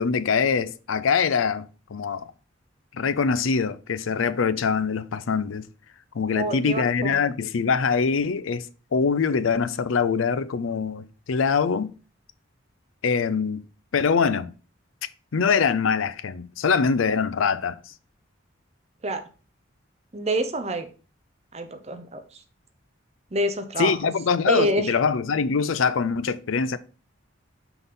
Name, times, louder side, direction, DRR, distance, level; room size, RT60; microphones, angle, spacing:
voice 1, 0.0-2.3 2.9-5.6 6.1-8.7 8.9-11.9 13.0-13.6 13.9-14.5 15.3-17.9 23.8-26.8, left 5 dB, 90° left, 0.5 m, -23 dB
voice 2, 6.3-7.2 19.0-19.3 20.1-20.9 21.5-22.4 23.3-24.0 24.5-24.9, right 1 dB, 35° right, 0.8 m, -27 dB
6.0 x 3.9 x 5.3 m
head